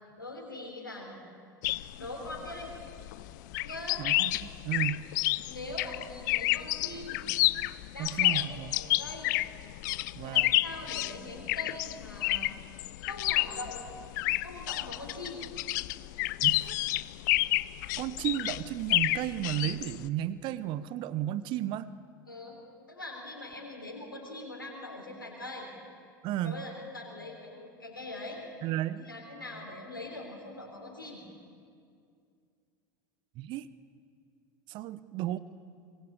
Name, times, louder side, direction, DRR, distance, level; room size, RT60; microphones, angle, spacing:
voice 1, 0.2-1.2 2.0-2.8 3.6-4.0 5.4-7.3 7.9-9.3 10.2-12.5 13.0-13.9 14.4-15.4 22.3-22.6 22.9-25.7 26.4-28.4 29.0-31.2, left 2 dB, 85° left, -1 dB, 3.5 m, -42 dB
sound 1, 1.6-20.1, left 19 dB, 60° left, 0.6 m, -30 dB
voice 2, 4.0-5.0 8.0-8.8 10.2-10.5 16.4-16.8 18.0-21.9 26.2-26.6 28.6-29.0 33.4-33.7 34.7-35.4, right 13 dB, 45° right, 16 dB, 0.9 m, -33 dB
24.5 x 20.5 x 8.5 m, 2.3 s
figure-of-eight pair, 80°, 11 cm